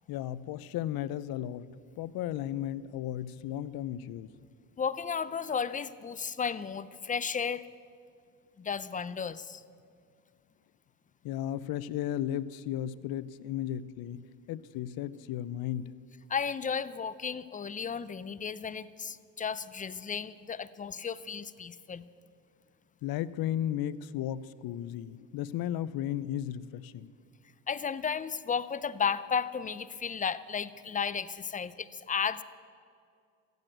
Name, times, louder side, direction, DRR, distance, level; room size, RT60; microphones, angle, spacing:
voice 1, 0.1-4.3 11.2-14.2 14.5-15.9 23.0-27.1, left 11 dB, 65° left, 18 dB, 0.6 m, -35 dB
voice 2, 4.8-7.7 8.6-9.6 16.3-22.1 27.7-32.4, left 6 dB, 20° left, 16 dB, 0.5 m, -34 dB
15.0 x 8.1 x 9.1 m, 2.2 s
supercardioid pair, 85°, 39 cm